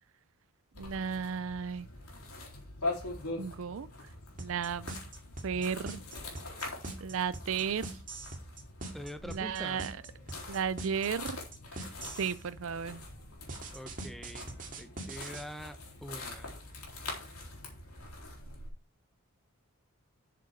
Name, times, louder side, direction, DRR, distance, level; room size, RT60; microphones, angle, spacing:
sound 1, 0.7-18.7, left 2 dB, 80° left, 3.7 m, -43 dB
voice 1, 0.8-1.9 3.4-3.9 4.4-4.9 5.4-6.0 7.0-7.9 9.3-10.0 10.5-11.4 11.7-11.9 12.2-13.0, right 6 dB, 60° right, 0.4 m, -34 dB
sound 2, 4.4-12.4 13.5-15.4, right 2 dB, 35° right, 2.2 m, -42 dB
voice 2, 8.9-9.8 13.7-16.5, equal, ahead, 0.8 m, -45 dB
7.9 x 6.7 x 5.0 m
head